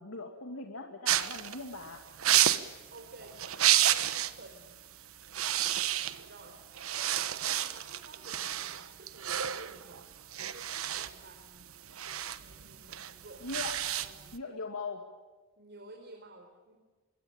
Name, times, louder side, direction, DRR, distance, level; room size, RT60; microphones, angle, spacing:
voice 1, 0.0-2.0 13.4-13.8 14.3-15.0, left 3 dB, 80° left, 3 dB, 2.5 m, -40 dB
sound 1, 1.1-4.4 4.7-4.9 5.2-6.4 6.7-14.4, right 11 dB, 70° right, 1.2 m, -30 dB
voice 2, 2.9-4.6 6.2-6.6 7.0-10.0 10.4-13.7 14.0-14.6 15.6-16.7, right 2 dB, 55° right, 1 dB, 4.4 m, -53 dB
25.5 x 22.0 x 8.9 m, 1.3 s
head